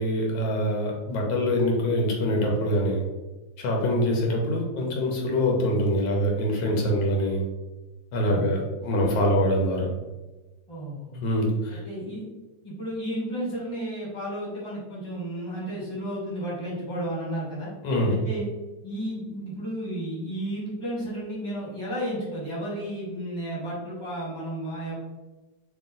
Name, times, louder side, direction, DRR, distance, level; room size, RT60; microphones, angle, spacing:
voice 1, 0.0-3.0 3.6-7.4 8.1-9.9 11.2-11.8 17.8-18.2, equal, 85° left, -1 dB, 1.6 m, -24 dB
voice 2, 10.7-11.3 11.7-12.2 12.6-17.7 18.1-18.5 18.8-25.0, right 1 dB, 15° left, -7 dB, 1.4 m, -33 dB
3.0 x 3.0 x 3.7 m, 1.2 s
omnidirectional pair, 2.0 m